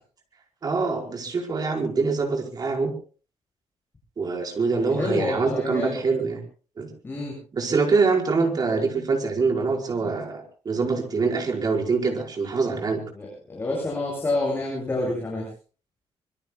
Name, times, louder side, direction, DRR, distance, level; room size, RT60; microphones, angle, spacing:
voice 1, 0.6-2.9 4.2-6.4 6.8-6.9 7.5-13.0, right 4 dB, 35° right, 1 dB, 4.9 m, -24 dB
voice 2, 4.7-6.0 7.0-7.3 13.1-15.5, left 2 dB, 20° left, -3 dB, 8.0 m, -28 dB
25.5 x 24.5 x 2.3 m, 0.38 s
wide cardioid pair, 155°, 11 cm